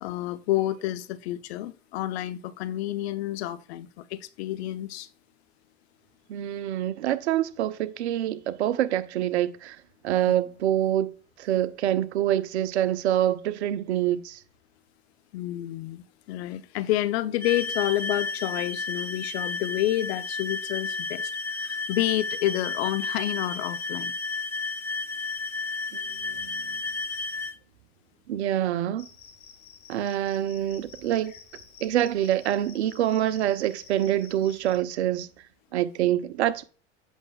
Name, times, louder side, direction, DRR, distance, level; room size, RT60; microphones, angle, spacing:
voice 1, 0.0-5.1 15.3-24.1, left 14 dB, 70° left, 0.8 m, -29 dB
voice 2, 6.3-9.8 10.0-11.1 11.4-14.4 25.9-26.8 28.3-29.1 29.9-31.3 31.8-35.3 35.7-36.6, right 12 dB, 80° right, 0.8 m, -26 dB
sound 1, 17.4-27.6, left 3 dB, 5° left, 0.8 m, -32 dB
Cricket, 29.0-34.8, left 6 dB, 30° left, 1.9 m, -50 dB
8.2 x 6.2 x 2.4 m
hypercardioid pair, 95°, 32 cm